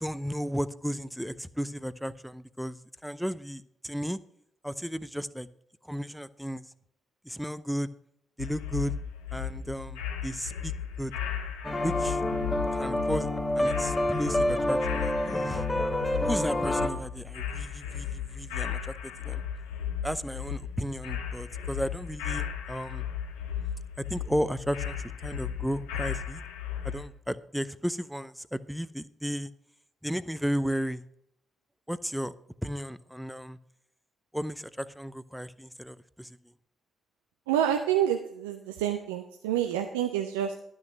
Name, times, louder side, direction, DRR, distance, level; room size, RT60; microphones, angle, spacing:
voice 1, 0.0-2.8 3.0-4.2 4.6-5.5 5.8-6.6 7.2-7.9 8.4-8.9 9.3-10.7 11.0-11.1 11.8-12.2 12.7-13.3 13.6-15.7 16.2-19.4 20.0-23.0 24.0-26.4 26.8-29.5 30.0-31.0 31.9-32.3 32.6-33.6 34.3-36.4, equal, ahead, 16 dB, 0.6 m, -34 dB
sound 1, 8.4-27.1, left 8 dB, 80° left, 1.1 m, -35 dB
sound 2, 11.6-16.9, left 1 dB, 20° left, 1.3 m, -28 dB
voice 2, 37.5-40.5, right 10 dB, 80° right, 5 dB, 0.5 m, -28 dB
12.0 x 6.4 x 5.9 m, 0.73 s
hypercardioid pair, 40°, 0 cm